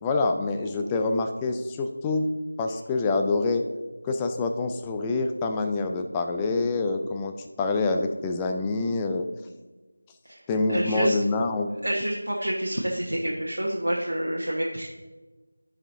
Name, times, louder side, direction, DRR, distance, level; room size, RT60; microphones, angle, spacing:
voice 1, 0.0-2.3 2.6-3.7 4.0-9.3 10.5-11.7, left 3 dB, 10° left, 5 dB, 0.3 m, -26 dB
voice 2, 10.7-11.2 11.8-14.9, right 1 dB, 80° right, -3 dB, 1.1 m, -28 dB
12.0 x 5.5 x 2.7 m, 1.2 s
figure-of-eight pair, 170°, 0 cm